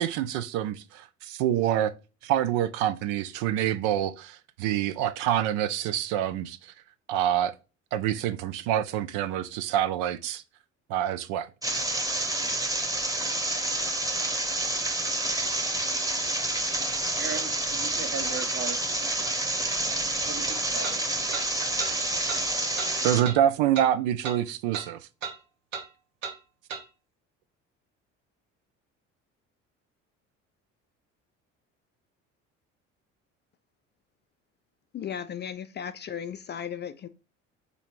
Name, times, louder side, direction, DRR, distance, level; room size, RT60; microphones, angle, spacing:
voice 1, 0.0-1.9 2.2-6.7 7.1-7.5 7.9-10.4 10.9-11.5 23.0-25.0, right 11 dB, 70° right, 0.5 m, -26 dB
sound 1, 11.6-23.2, right 1 dB, 10° right, 0.9 m, -28 dB
voice 2, 17.2-18.9 20.2-21.3, right 6 dB, 35° right, 0.8 m, -38 dB
sound 2, 19.3-19.4 20.8-21.0 21.3-21.5 21.8-21.9 22.3-22.4 22.8-22.9 23.2-23.4 23.8-23.9 24.2-24.4 24.7-24.9 25.2-25.4 25.7-25.9 26.2-26.4 26.7-26.8, right 6 dB, 90° right, 1.0 m, -35 dB
voice 3, 34.9-37.1, left 8 dB, 30° left, 0.4 m, -36 dB
4.0 x 2.8 x 4.4 m
hypercardioid pair, 60°, 37 cm